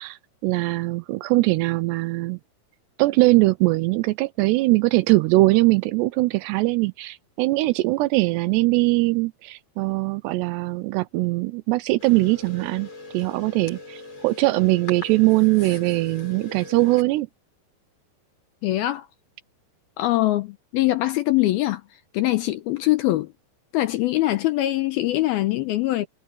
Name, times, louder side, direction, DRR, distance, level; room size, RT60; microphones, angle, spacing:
voice 1, 0.0-2.4 3.0-17.3, right 21 dB, 85° right, 2.6 m, -21 dB
sound 1, 12.0-17.0, left 3 dB, 30° left, 8.6 m, -40 dB
voice 2, 18.6-19.1 20.0-23.3 23.7-26.1, left 16 dB, 80° left, 2.3 m, -23 dB
omnidirectional pair, 5.1 m